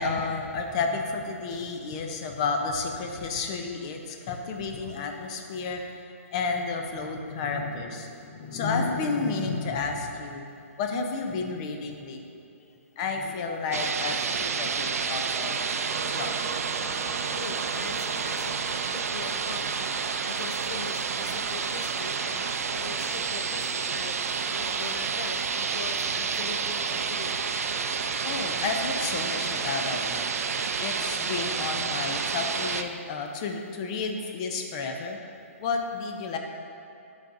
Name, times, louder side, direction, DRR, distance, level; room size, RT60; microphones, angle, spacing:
voice 1, 0.0-5.8 6.3-10.5 10.8-12.2 13.0-15.7 16.1-16.4 28.2-30.4 30.8-35.2 35.6-36.4, left 4 dB, 25° left, 3 dB, 0.4 m, -31 dB
sound 1, 13.7-32.8, right 5 dB, 90° right, 0.4 m, -29 dB
voice 2, 15.8-16.2 17.2-27.3, left 5 dB, 85° left, 6 dB, 0.6 m, -42 dB
sound 2, 15.9-21.1, right 5 dB, 40° right, 0.6 m, -42 dB
11.0 x 4.0 x 2.5 m, 2.6 s
hypercardioid pair, 165°, 8 cm